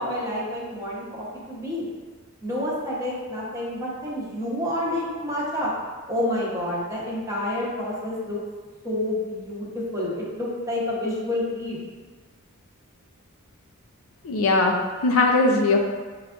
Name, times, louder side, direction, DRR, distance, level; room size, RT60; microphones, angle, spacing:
voice 1, 0.0-1.9 2.4-5.7 6.1-8.4 8.8-11.8, left 1 dB, 15° right, -6 dB, 0.9 m, -28 dB
voice 2, 14.2-15.8, left 2 dB, 65° left, 1 dB, 0.5 m, -20 dB
6.6 x 2.4 x 2.4 m, 1.5 s
head